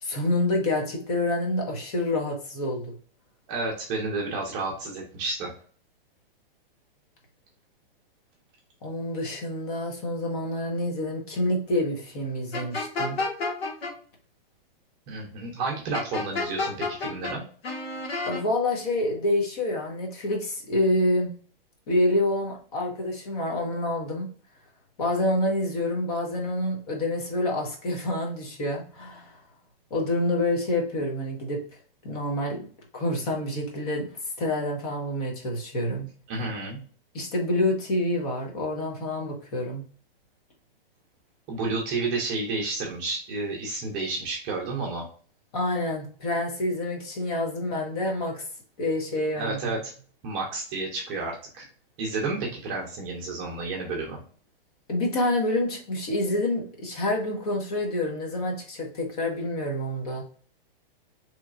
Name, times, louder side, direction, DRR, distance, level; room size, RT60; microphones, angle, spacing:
voice 1, 0.0-2.9 8.8-13.2 18.2-21.3 21.9-24.3 25.0-29.4 29.9-31.6 32.0-32.6 32.9-34.1 34.4-36.1 37.1-39.8 45.5-48.4 48.8-49.8 54.9-60.2, left 1 dB, 40° left, 1 dB, 1.2 m, -27 dB
voice 2, 3.5-5.5 15.1-17.4 36.3-36.8 41.5-45.0 49.4-49.9 50.2-51.7 52.0-54.2, right 3 dB, 20° right, -1 dB, 0.6 m, -31 dB
sound 1, 12.5-13.9 15.9-17.3 17.6-18.4, left 3 dB, 85° left, 1.3 m, -30 dB
4.0 x 3.1 x 2.4 m, 0.43 s
hypercardioid pair, 165°, 30 cm